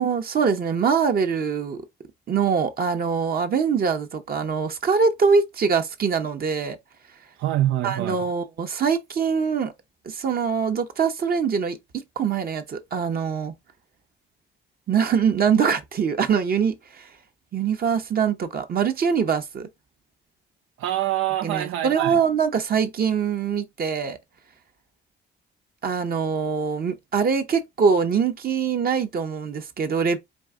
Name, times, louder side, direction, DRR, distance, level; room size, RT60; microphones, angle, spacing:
voice 1, 0.0-1.8 2.3-6.8 7.8-9.7 10.1-11.8 12.2-13.6 14.9-17.1 17.5-19.7 21.4-24.2 25.8-30.2, right 6 dB, 50° right, 0.9 m, -23 dB
voice 2, 7.4-8.2 20.8-22.2, right 14 dB, 85° right, 0.4 m, -25 dB
4.6 x 2.6 x 3.6 m
cardioid pair, 90°, 20 cm